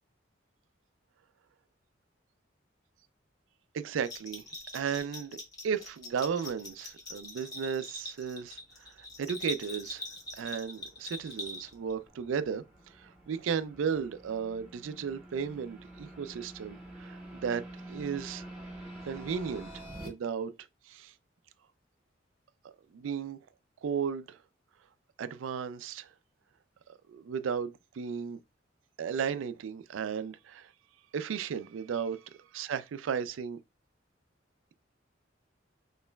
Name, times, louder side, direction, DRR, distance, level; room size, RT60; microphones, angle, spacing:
voice 1, 3.7-4.4 4.7-5.4 5.6-10.0 10.3-12.6 12.9-17.6 17.9-18.4 19.1-19.7 20.0-20.5 20.9-21.1 22.6-23.4 23.8-24.4 25.2-26.1 27.1-28.4 29.0-30.7 31.1-32.2 32.5-33.6, right 7 dB, 85° right, 0.4 m, -34 dB
Bell, 4.0-11.9, left 2 dB, 20° left, 1.0 m, -43 dB
sound 1, 8.6-20.1, right 1 dB, 10° right, 1.6 m, -48 dB
4.3 x 3.1 x 2.2 m
head